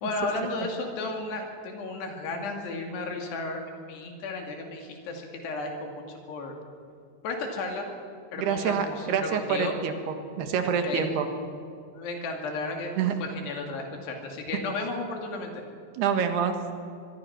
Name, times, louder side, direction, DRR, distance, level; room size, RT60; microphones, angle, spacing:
voice 1, 0.0-5.9 6.3-6.5 7.2-7.9 8.3-9.7 10.8-11.1 11.9-12.9 13.2-15.5, left 3 dB, 75° left, 2 dB, 4.5 m, -33 dB
voice 2, 8.4-9.9 10.4-11.3 13.0-13.2 16.0-16.6, right 7 dB, 75° right, 7 dB, 3.5 m, -26 dB
24.5 x 22.0 x 5.9 m, 2.5 s
omnidirectional pair, 4.8 m